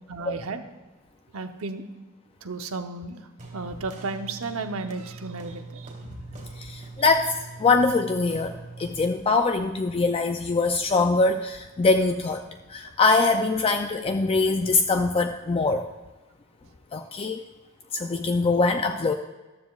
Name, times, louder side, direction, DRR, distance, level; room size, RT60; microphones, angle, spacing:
voice 1, 0.1-0.6 1.3-1.8 2.4-3.3 3.5-5.9, right 3 dB, 85° right, 7 dB, 0.8 m, -33 dB
sound 1, 3.4-9.2, right 3 dB, 40° right, 1.9 m, -42 dB
voice 2, 6.6-7.3 7.6-12.4 12.7-15.9 16.9-17.4 17.9-19.1, left 3 dB, 25° left, 6 dB, 0.4 m, -23 dB
14.0 x 12.5 x 2.4 m, 1.2 s
head